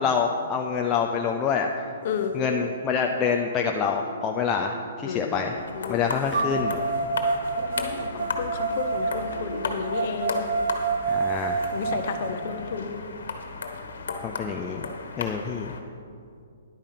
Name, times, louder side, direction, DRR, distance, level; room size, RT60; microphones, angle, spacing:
voice 1, 0.0-1.7 2.3-5.5 5.9-6.8 11.1-11.6 14.2-14.9 15.2-15.7, left 6 dB, 10° left, 1 dB, 0.4 m, -26 dB
sound 1, 2.5-2.6 3.2-5.1 6.3-12.3, right 4 dB, 45° right, 1.3 m, -29 dB
voice 2, 5.1-5.4 5.7-6.6 7.6-10.4 11.7-13.0, left 6 dB, 35° left, 6 dB, 0.9 m, -32 dB
sound 2, 5.5-15.8, left 4 dB, 70° left, 1.5 m, -35 dB
10.5 x 8.9 x 5.8 m, 2.4 s
hypercardioid pair, 175°, 0 cm